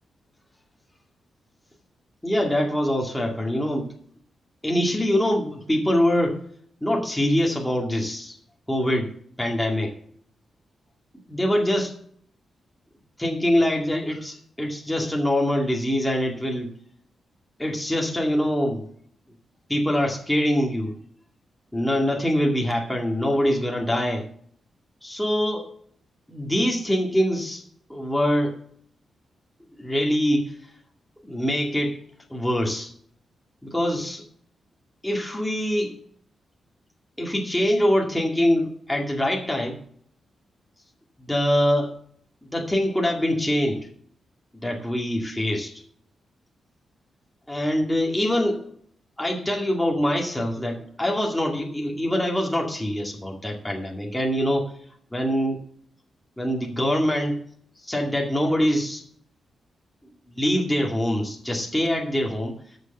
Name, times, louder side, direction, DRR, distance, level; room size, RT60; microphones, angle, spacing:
voice 1, 2.2-3.9 4.6-6.4 6.8-8.4 8.7-9.1 9.4-10.0 11.3-11.9 13.2-16.7 17.6-18.8 19.7-20.9 21.7-24.3 25.0-25.7 26.3-27.6 27.9-28.6 29.8-30.6 31.2-32.0 32.3-32.9 33.6-34.2 35.0-36.0 37.2-39.8 41.2-41.9 42.4-43.9 44.6-45.7 47.5-48.7 49.2-54.7 55.1-55.6 56.4-57.4 57.8-59.0 60.3-62.6, equal, 5° left, -1 dB, 2.1 m, -24 dB
13.0 x 6.6 x 5.8 m, 0.62 s
wide cardioid pair, 140°, 0 cm